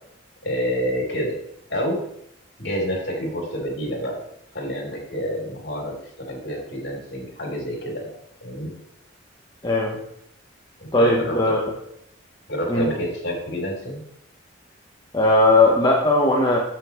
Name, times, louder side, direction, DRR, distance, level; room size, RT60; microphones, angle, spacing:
voice 1, 0.4-1.3 1.7-2.0 2.6-4.2 4.5-8.1 8.4-8.7 10.8-11.6 12.5-14.0, equal, 60° left, -1 dB, 3.6 m, -28 dB
voice 2, 9.6-10.0 10.9-11.6 12.7-12.9 15.1-16.6, left 2 dB, 20° left, -2 dB, 1.0 m, -18 dB
8.8 x 8.0 x 3.1 m, 0.74 s
head